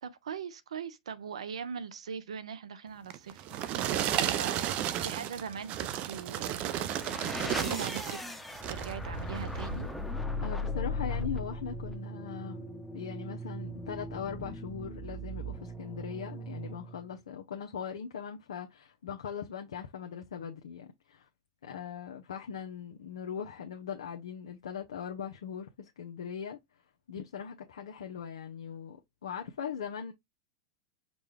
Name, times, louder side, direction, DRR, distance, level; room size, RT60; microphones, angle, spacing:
voice 1, 0.0-3.4 3.8-6.7 7.3-8.2 8.7-9.9, right 7 dB, 85° right, 0.7 m, -41 dB
sound 1, 3.1-8.2 8.6-9.0 9.6-9.7, right 11 dB, 45° right, 0.5 m, -33 dB
sound 2, 6.4-17.1, left 1 dB, 5° left, 0.8 m, -38 dB
voice 2, 10.4-12.7 12.9-21.3 21.6-26.6 27.1-29.0 29.2-30.1, left 7 dB, 85° left, 0.7 m, -40 dB
5.2 x 2.3 x 3.2 m
hypercardioid pair, 110°, 3 cm